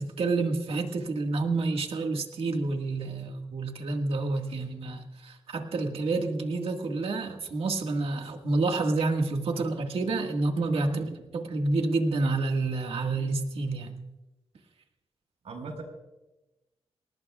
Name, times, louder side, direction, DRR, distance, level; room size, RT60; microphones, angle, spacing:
voice 1, 0.0-11.0 11.3-14.0, right 3 dB, 60° right, 3 dB, 1.8 m, -29 dB
voice 2, 10.9-11.2 15.4-15.8, right 4 dB, 75° right, 3 dB, 4.8 m, -38 dB
28.5 x 18.0 x 2.4 m, 1.0 s
wide cardioid pair, 175°, 11 cm